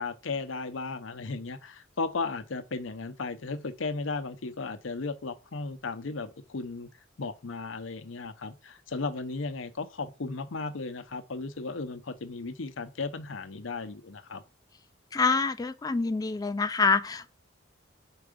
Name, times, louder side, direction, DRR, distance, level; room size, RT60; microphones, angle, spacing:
voice 1, 0.0-6.9 7.2-14.4, left 3 dB, 85° left, 0.7 m, -35 dB
voice 2, 15.1-17.3, left 4 dB, 20° left, 0.3 m, -26 dB
4.8 x 4.6 x 5.0 m
head